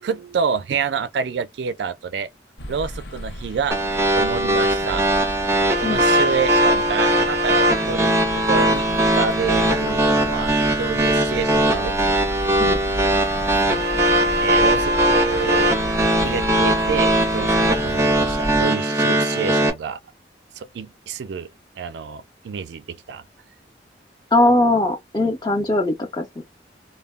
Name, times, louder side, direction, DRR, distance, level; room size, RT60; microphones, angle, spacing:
voice 1, 0.0-2.3 2.7-3.8 4.2-5.1 5.8-12.0 14.4-15.8 16.1-20.0 20.6-23.2, right 6 dB, 75° right, 0.3 m, -28 dB
sound 1, 2.6-18.6, equal, 85° left, 0.7 m, -34 dB
sound 2, 3.7-19.7, right 1 dB, 15° right, 0.6 m, -20 dB
voice 2, 24.3-26.4, left 2 dB, 20° left, 0.8 m, -20 dB
2.1 x 2.0 x 3.4 m
head